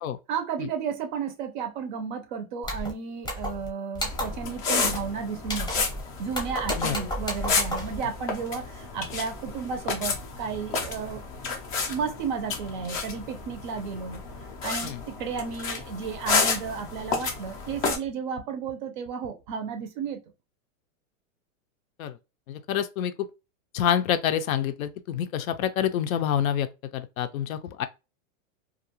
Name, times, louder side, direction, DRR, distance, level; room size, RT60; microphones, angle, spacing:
voice 1, 0.3-5.8 6.2-11.2 11.9-14.2 14.6-20.2, right 6 dB, 40° right, 0.4 m, -33 dB
sound 1, 2.6-2.9 3.2-3.7 3.9-4.4 4.8-5.1 5.4-6.0 6.3-8.0, equal, 10° left, 0.7 m, -32 dB
sound 2, 4.0-18.0, left 4 dB, 30° left, 0.4 m, -31 dB
voice 2, 6.7-7.1 14.8-15.0 22.0-22.2 22.5-23.3 23.7-26.7 26.9-27.9, left 9 dB, 80° left, 0.5 m, -27 dB
2.5 x 2.2 x 2.7 m
supercardioid pair, 150°, 41 cm